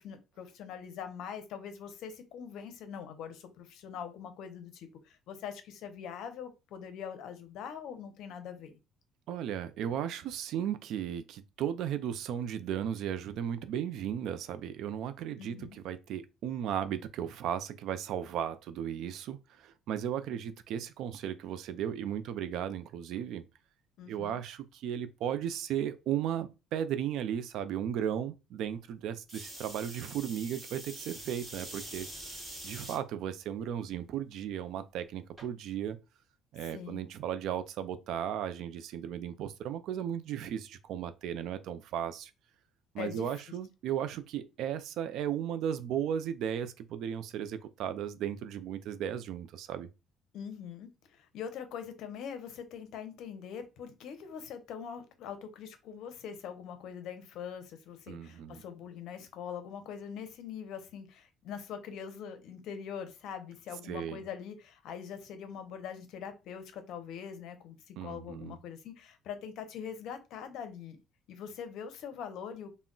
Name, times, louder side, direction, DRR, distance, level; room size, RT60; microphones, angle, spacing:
voice 1, 0.0-8.7 15.4-15.8 24.0-24.4 36.7-37.0 43.0-43.3 50.3-71.0 71.3-72.8, left 7 dB, 70° left, 0.6 m, -43 dB
voice 2, 9.3-23.4 24.1-32.1 32.6-36.0 36.5-42.3 42.9-49.9 58.1-58.6 63.9-64.2 68.0-68.6, right 9 dB, 70° right, 0.3 m, -35 dB
sound 1, 29.3-33.0 33.6-34.1 35.4-35.5, right 1 dB, 20° right, 1.1 m, -45 dB
2.2 x 2.0 x 3.7 m
cardioid pair, 115°, 0 cm